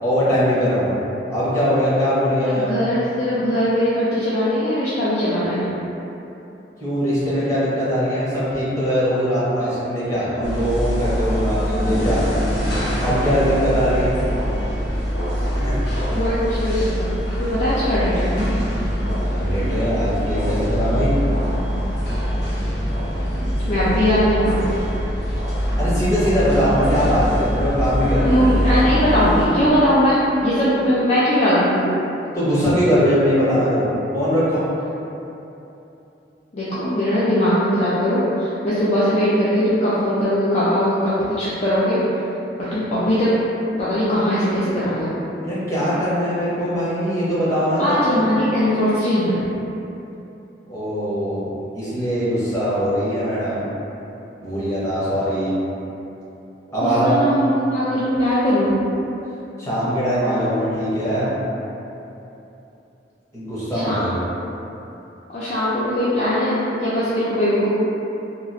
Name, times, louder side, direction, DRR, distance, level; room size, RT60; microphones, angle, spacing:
voice 1, 0.0-0.9 1.3-2.7 6.8-12.5 13.0-14.1 15.5-15.8 19.3-21.1 25.8-28.5 32.3-33.8 34.1-34.7 45.4-48.2 50.7-51.4 51.7-53.7 54.4-55.6 56.7-57.2 59.6-61.3 63.3-64.2, equal, 15° left, -12 dB, 0.9 m, -21 dB
voice 2, 2.4-5.7 16.1-17.1 17.4-18.3 23.7-24.6 28.2-32.0 36.5-42.0 42.7-43.4 43.8-45.1 47.8-49.4 56.8-58.7 63.7-64.0 65.3-67.7, equal, 40° left, -11 dB, 0.4 m, -20 dB
sound 1, 10.4-29.5, equal, 70° left, 0.9 m, -23 dB
3.0 x 2.4 x 2.6 m, 2.9 s
head